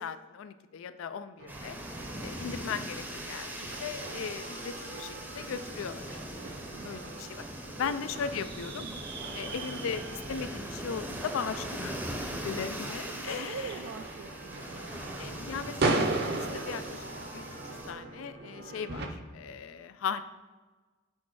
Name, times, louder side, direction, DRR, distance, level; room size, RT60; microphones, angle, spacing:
voice 1, 0.0-1.8 2.2-6.1 6.8-7.4 7.8-8.8 9.4-13.7 15.2-17.0 17.3-17.6 17.9-20.2, left 6 dB, 80° left, 12 dB, 0.4 m, -38 dB
sound 1, 1.4-19.1, right 2 dB, 50° right, 0.7 m, -38 dB
sound 2, 1.5-17.9, right 1 dB, 10° right, 0.6 m, -41 dB
voice 2, 6.7-7.4 7.8-7.9 8.7-9.0 12.3-15.0, right 5 dB, 70° right, 6 dB, 0.3 m, -45 dB
6.4 x 4.2 x 4.6 m, 1.3 s
head